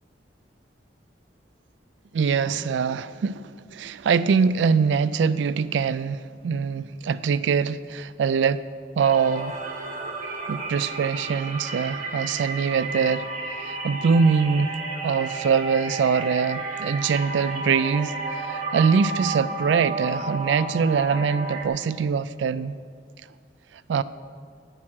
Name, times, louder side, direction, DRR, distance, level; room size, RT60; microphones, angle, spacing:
voice 1, 2.1-8.7 9.0-9.6 10.5-14.7 15.0-22.8 23.7-24.0, right 6 dB, 85° right, 15 dB, 0.3 m, -23 dB
sound 1, 9.0-21.7, right 3 dB, 45° right, 1.4 m, -32 dB
10.5 x 6.2 x 8.6 m, 2.1 s
head